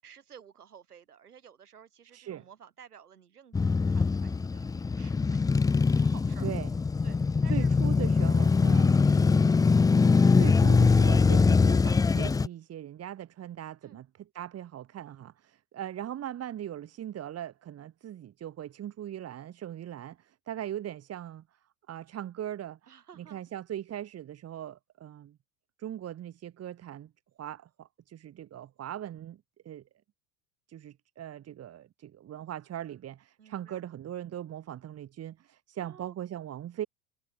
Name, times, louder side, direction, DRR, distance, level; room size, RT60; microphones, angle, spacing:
voice 1, 0.0-5.4 5.9-6.5 7.0-7.7 8.6-8.8 9.0-9.4 13.8-14.0 22.9-23.4 33.4-33.8 35.8-36.1, right 8 dB, 80° right, 7.2 m, -53 dB
voice 2, 2.1-2.4 6.4-6.7 7.5-9.0 10.4-21.4 21.9-22.8 23.2-25.4 25.8-27.1 27.4-29.8 30.7-36.9, right 11 dB, 35° right, 2.0 m, -40 dB
Male speech man speaking / Motorcycle / Idling, 3.5-12.5, left 4 dB, 10° left, 0.5 m, -23 dB
figure-of-eight pair, 75°, 45 cm